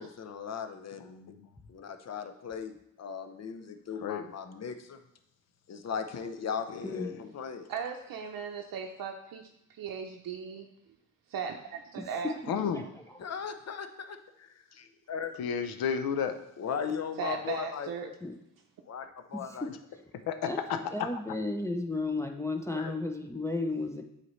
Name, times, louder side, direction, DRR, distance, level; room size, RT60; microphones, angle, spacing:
voice 1, 0.0-1.3 1.7-5.0 5.7-7.7 13.2-15.4 16.6-18.1 18.9-19.7, left 7 dB, 50° left, 8 dB, 0.7 m, -38 dB
voice 2, 1.1-1.5 4.0-4.3 6.9-7.2 12.5-12.8 15.4-16.4 20.3-20.8 22.7-22.9, left 7 dB, 90° left, 9 dB, 0.6 m, -32 dB
voice 3, 6.8-7.3 12.7-12.9 18.2-18.3 19.3-19.7 20.5-20.6 20.9-24.0, left 2 dB, 10° left, 3 dB, 0.5 m, -33 dB
voice 4, 7.7-9.5 9.7-10.7 11.3-12.3 17.2-18.1, right 6 dB, 75° right, 2 dB, 0.6 m, -37 dB
7.8 x 4.2 x 3.1 m, 0.80 s
cardioid pair, 85°, 35 cm